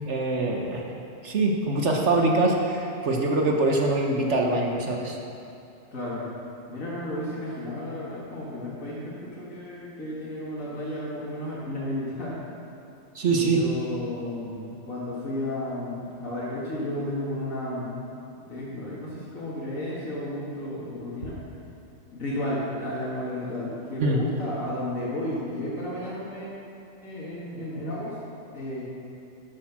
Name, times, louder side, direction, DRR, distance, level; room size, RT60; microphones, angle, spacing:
voice 1, 0.0-0.9 1.2-5.2 13.1-13.6 24.0-24.2, right 2 dB, 60° right, 1 dB, 1.3 m, -24 dB
voice 2, 5.9-6.2 6.7-12.4 13.3-18.1 18.5-21.3 22.1-26.5 27.0-28.1 28.5-28.8, left 1 dB, 75° left, -8 dB, 2.5 m, -33 dB
12.5 x 7.9 x 6.0 m, 2.7 s
omnidirectional pair, 1.4 m